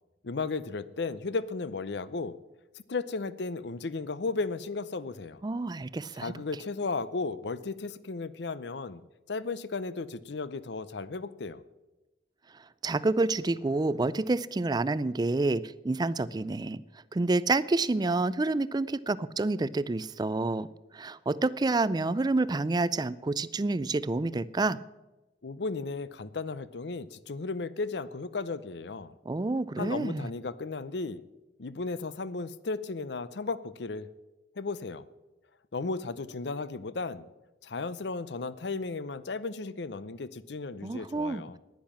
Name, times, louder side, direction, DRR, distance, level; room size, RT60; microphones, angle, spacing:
voice 1, 0.2-2.4 2.9-5.4 6.2-9.0 9.3-11.6 25.4-29.1 29.8-31.2 31.6-34.1 34.6-35.0 35.7-37.3 37.6-41.6, left 3 dB, 65° left, 16 dB, 0.6 m, -35 dB
voice 2, 5.4-6.3 12.8-16.8 17.1-20.7 20.9-24.8 29.3-30.3 40.8-41.6, right 2 dB, 20° right, 18 dB, 0.4 m, -28 dB
10.5 x 10.5 x 7.3 m, 1.0 s
head